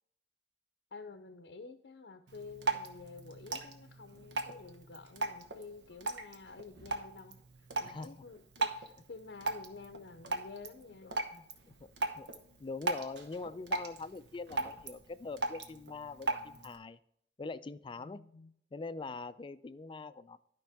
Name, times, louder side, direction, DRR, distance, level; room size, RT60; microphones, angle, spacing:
voice 1, 0.9-11.2 18.0-18.5, left 4 dB, 70° left, 8 dB, 0.6 m, -50 dB
Drip, 2.3-16.8, right 3 dB, 80° right, 1.0 m, -39 dB
voice 2, 7.8-8.2 11.3-11.5 11.8-17.0 17.4-18.2 18.7-20.4, left 3 dB, 30° left, 15 dB, 0.3 m, -43 dB
12.0 x 5.3 x 3.4 m, 0.73 s
head